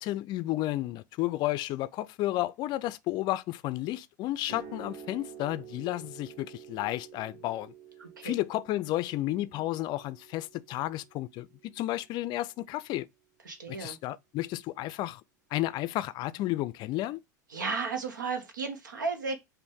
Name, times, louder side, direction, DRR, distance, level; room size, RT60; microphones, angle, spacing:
voice 1, 0.0-7.7 8.2-13.1 13.7-15.2 15.5-17.2, left 16 dB, 45° left, 0.4 m, -32 dB
sound 1, 4.4-12.5, right 7 dB, 50° right, 2.0 m, -50 dB
voice 2, 8.0-8.3 13.4-14.0 17.5-19.4, right 4 dB, 85° right, 1.1 m, -34 dB
5.1 x 2.6 x 3.5 m
hypercardioid pair, 90°, 10 cm